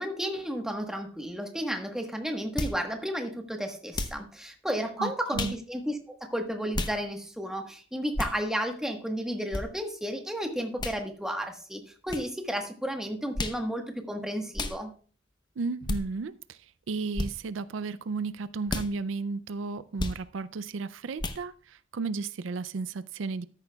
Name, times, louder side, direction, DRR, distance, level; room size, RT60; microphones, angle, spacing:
voice 1, 0.0-14.9, equal, 5° right, 4 dB, 1.3 m, -33 dB
sound 1, 2.6-2.8 3.9-4.2 5.3-5.6 6.7-7.0 8.1-8.4 9.5-9.7 10.8-11.0 12.1-12.3 13.3-13.6 14.5-14.8 15.9-16.0 17.1-17.3 18.7-18.9 20.0-20.2 21.2-21.4, left 2 dB, 25° left, 0.7 m, -31 dB
voice 2, 5.0-5.5 15.6-16.6 16.9-23.5, right 4 dB, 85° right, 15 dB, 0.4 m, -34 dB
13.5 x 10.5 x 2.3 m, 0.42 s
head